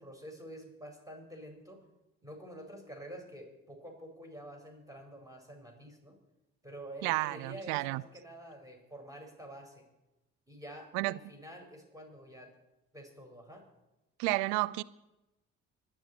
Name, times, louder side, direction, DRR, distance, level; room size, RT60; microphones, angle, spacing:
voice 1, 0.0-1.8 2.2-6.2 6.6-9.9 10.5-12.5 12.9-13.6, right 1 dB, 10° right, 4.8 m, -48 dB
voice 2, 7.0-8.0 10.9-11.2 14.2-14.8, right 21 dB, 75° right, 0.6 m, -31 dB
25.0 x 10.0 x 4.3 m
hypercardioid pair, 50°, 34 cm